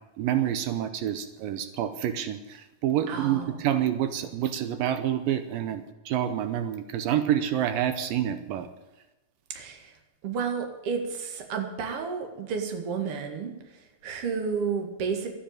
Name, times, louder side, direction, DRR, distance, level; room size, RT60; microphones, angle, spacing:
voice 1, 0.2-2.4 2.8-8.7, right 10 dB, 75° right, 10 dB, 2.4 m, -27 dB
voice 2, 3.1-3.6 9.5-10.0 10.2-15.3, right 5 dB, 45° right, 4 dB, 2.5 m, -32 dB
12.5 x 10.0 x 8.8 m, 1.1 s
omnidirectional pair, 4.3 m